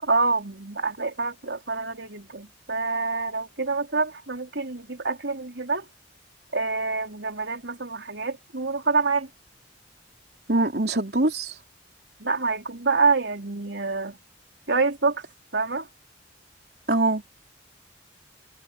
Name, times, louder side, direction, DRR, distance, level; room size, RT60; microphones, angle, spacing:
voice 1, 0.0-5.8 6.5-9.3 12.2-14.2 14.7-15.2 15.5-15.9, right 4 dB, 85° right, 4.0 m, -26 dB
voice 2, 10.5-11.5 16.9-17.3, right 2 dB, 60° right, 3.8 m, -23 dB
head